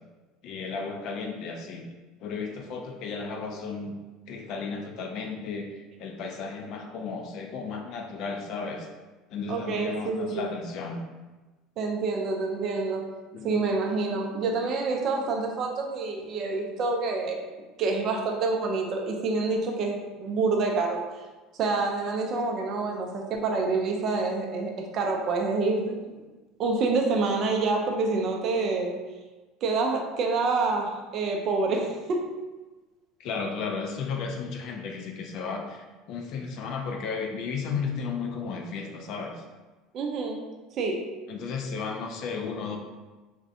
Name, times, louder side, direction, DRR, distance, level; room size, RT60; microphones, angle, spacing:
voice 1, 0.4-1.9 2.2-4.0 4.3-8.9 9.3-11.0 13.3-13.8 33.2-39.4 41.3-42.8, left 5 dB, 60° left, 2 dB, 0.4 m, -34 dB
voice 2, 9.5-10.5 11.8-13.1 13.4-17.4 17.8-21.0 21.6-26.2 26.6-29.0 29.6-32.4 39.9-40.4 40.8-41.1, right 3 dB, 50° right, 2 dB, 0.4 m, -27 dB
2.5 x 2.1 x 2.6 m, 1.2 s
supercardioid pair, 90°, 0 cm